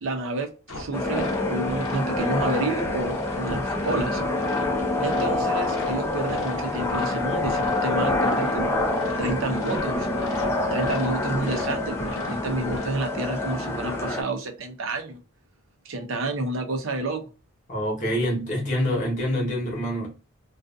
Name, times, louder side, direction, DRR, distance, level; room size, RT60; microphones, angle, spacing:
voice 1, 0.0-4.2 5.0-8.8 9.2-10.1 10.7-15.2 15.9-17.2, right 2 dB, 65° right, 0.6 m, -30 dB
sound 1, 0.7-12.9, left 2 dB, 75° left, 0.7 m, -37 dB
sound 2, 0.9-14.2, left 2 dB, 10° left, 0.4 m, -26 dB
voice 2, 17.7-20.1, equal, 35° left, 1.0 m, -26 dB
2.4 x 2.4 x 2.3 m
head